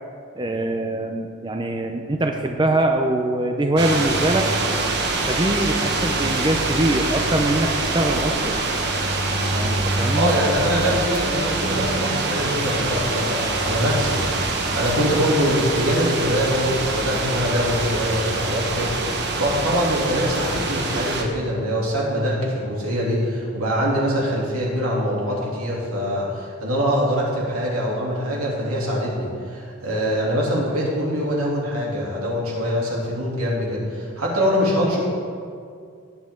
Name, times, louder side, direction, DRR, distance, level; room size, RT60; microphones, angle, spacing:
voice 1, 0.4-4.5 5.3-8.6 9.5-10.3, right 1 dB, 20° right, 3 dB, 0.6 m, -23 dB
sound 1, 3.8-21.2, right 3 dB, 50° right, 1.2 m, -24 dB
voice 2, 10.1-35.0, equal, 80° right, -4 dB, 3.2 m, -23 dB
19.0 x 8.5 x 3.8 m, 2.3 s
head